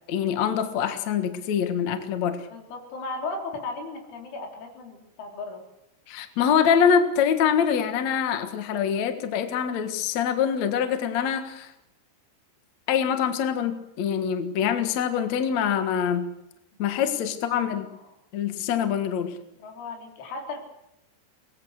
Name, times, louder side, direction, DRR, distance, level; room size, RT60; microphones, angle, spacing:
voice 1, 0.1-2.4 6.1-11.7 12.9-16.3 16.8-17.9 18.3-19.3, left 8 dB, 60° left, 7 dB, 1.9 m, -24 dB
voice 2, 2.5-5.6 17.1-17.6 19.6-20.6, left 3 dB, 75° left, 2 dB, 6.1 m, -36 dB
24.0 x 20.0 x 6.6 m, 0.88 s
omnidirectional pair, 5.5 m